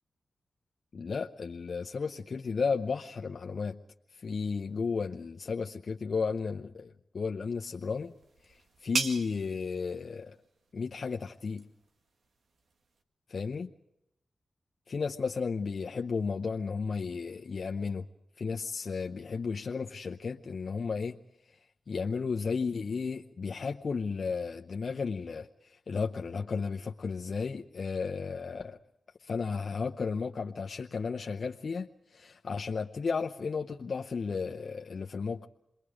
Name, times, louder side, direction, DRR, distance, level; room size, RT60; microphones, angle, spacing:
voice 1, 0.9-3.8 4.1-8.1 8.4-10.4 10.7-11.7 13.3-13.7 14.9-18.0 18.4-21.2 21.9-28.8 29.2-35.5, left 5 dB, 60° left, 3 dB, 0.8 m, -34 dB
sound 1, 7.6-13.0, right 4 dB, 75° right, 1.9 m, -40 dB
28.0 x 21.0 x 5.0 m, 0.81 s
cardioid pair, 55°, 0 cm